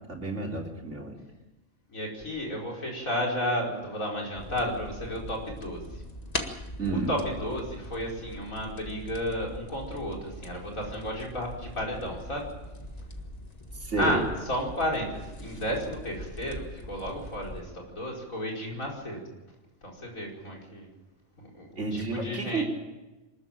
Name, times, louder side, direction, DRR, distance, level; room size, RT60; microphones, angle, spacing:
voice 1, 0.1-1.2 6.8-7.1 13.8-14.2 21.8-22.6, right 3 dB, 60° right, 0 dB, 3.9 m, -30 dB
voice 2, 1.9-6.0 6.9-12.5 14.0-19.2 19.8-20.9 21.4-22.6, equal, 85° left, 0 dB, 5.5 m, -33 dB
sound 1, 4.3-17.6, left 1 dB, 30° left, 1.8 m, -41 dB
24.0 x 14.0 x 9.1 m, 1.1 s
omnidirectional pair, 1.4 m